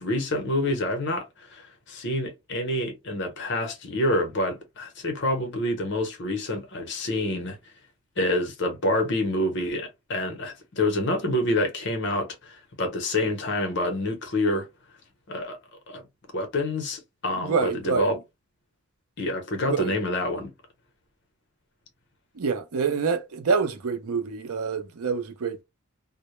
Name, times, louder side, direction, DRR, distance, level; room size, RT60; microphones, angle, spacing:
voice 1, 0.0-7.6 8.2-14.7 15.3-15.6 15.9-16.0 16.3-18.2 19.2-20.5, left 1 dB, 50° left, 0.7 m, -27 dB
voice 2, 17.4-18.1 19.7-19.9 22.4-25.6, right 5 dB, 85° right, 0.5 m, -26 dB
2.1 x 2.0 x 3.0 m
head